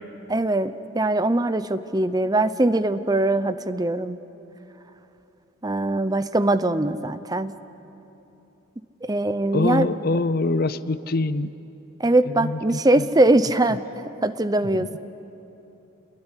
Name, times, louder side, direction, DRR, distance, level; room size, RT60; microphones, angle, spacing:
voice 1, 0.3-4.2 5.6-7.5 9.0-9.9 12.0-13.8 14.2-15.0, right 2 dB, 20° right, 13 dB, 0.7 m, -22 dB
voice 2, 9.5-11.5 12.3-13.0 14.8-14.9, left 2 dB, 45° left, 15 dB, 0.6 m, -25 dB
28.5 x 21.0 x 9.9 m, 3.0 s
head